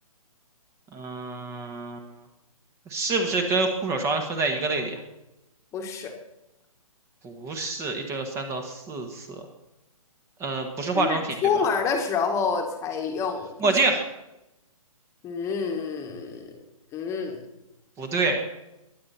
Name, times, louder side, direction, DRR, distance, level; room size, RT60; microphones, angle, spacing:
voice 1, 0.9-2.0 2.9-5.0 7.2-9.4 10.4-11.4 13.6-14.0 18.0-18.4, right 3 dB, 15° right, 5 dB, 1.5 m, -27 dB
voice 2, 5.7-6.1 10.9-13.7 15.2-16.5 16.9-17.4, left 6 dB, 15° left, 4 dB, 1.6 m, -28 dB
22.0 x 8.8 x 4.3 m, 0.91 s
hypercardioid pair, 145°, 19 cm